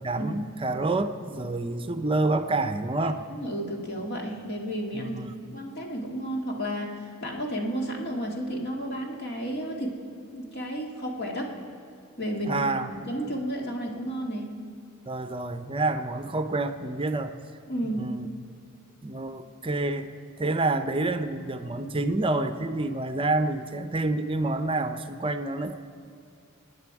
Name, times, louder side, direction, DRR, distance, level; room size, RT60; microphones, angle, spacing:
voice 1, 0.0-3.2 4.9-5.3 12.5-12.9 15.1-17.3 17.8-18.3 19.0-20.1 20.4-25.8, right 2 dB, 25° right, 9 dB, 0.6 m, -28 dB
voice 2, 3.0-5.2 5.5-10.0 10.3-11.5 12.2-12.7 12.9-14.5 17.7-18.1, equal, 50° left, 0 dB, 2.1 m, -32 dB
29.5 x 9.8 x 4.8 m, 2.4 s
head